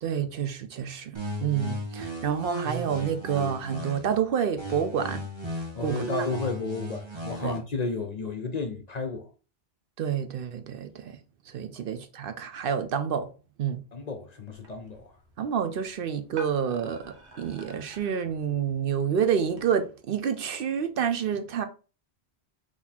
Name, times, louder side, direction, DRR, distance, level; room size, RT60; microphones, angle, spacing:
voice 1, 0.0-1.1 1.4-5.2 5.8-6.0 7.4-7.5 10.0-11.2 11.5-13.3 13.6-13.8 15.4-21.6, right 8 dB, 65° right, 0.7 m, -28 dB
sound 1, 1.1-4.2 4.6-7.6, right 1 dB, 25° right, 1.1 m, -35 dB
voice 2, 5.8-9.3 13.9-15.2, left 3 dB, 50° left, 0.5 m, -32 dB
sound 2, 14.5-19.7, right 1 dB, 90° right, 1.4 m, -50 dB
4.0 x 2.9 x 4.2 m
omnidirectional pair, 1.1 m